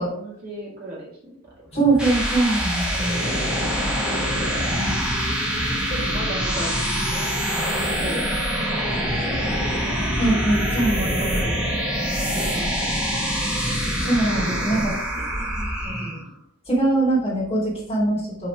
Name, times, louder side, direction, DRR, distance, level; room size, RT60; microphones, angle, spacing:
voice 1, 0.0-1.4 5.9-6.8 7.5-8.3 8.7-9.6 10.3-10.4 10.9-11.6 12.1-12.9 14.3-14.9 15.8-16.2, right 1 dB, 45° right, -5 dB, 2.2 m, -36 dB
voice 2, 1.7-3.3 4.8-4.9 10.2-11.4 14.0-14.9 16.7-18.5, right 2 dB, 25° left, -7 dB, 2.8 m, -22 dB
sound 1, 1.7-16.3, equal, 5° right, 1.4 m, -25 dB
6.0 x 4.0 x 4.8 m, 0.70 s
head